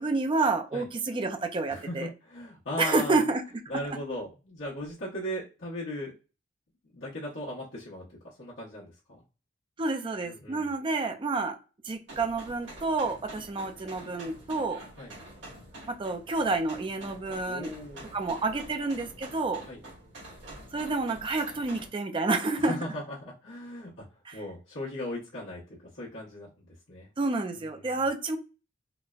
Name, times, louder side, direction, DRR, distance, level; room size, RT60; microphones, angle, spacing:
voice 1, 0.0-2.1 2.8-3.4 9.8-11.6 11.8-14.8 15.9-17.7 18.1-19.6 20.7-22.8 24.3-24.4 27.2-28.4, right 3 dB, 25° right, 6 dB, 0.4 m, -29 dB
voice 2, 1.7-3.2 3.7-6.1 6.9-9.2 10.2-10.7 15.0-15.1 17.4-18.1 19.7-19.8 22.6-24.0 24.3-25.6 25.9-27.1 27.5-28.0, left 1 dB, 85° left, -9 dB, 1.0 m, -38 dB
sound 1, 12.1-21.9, right 1 dB, 70° right, 1.5 m, -47 dB
4.0 x 2.1 x 2.3 m, 0.33 s
head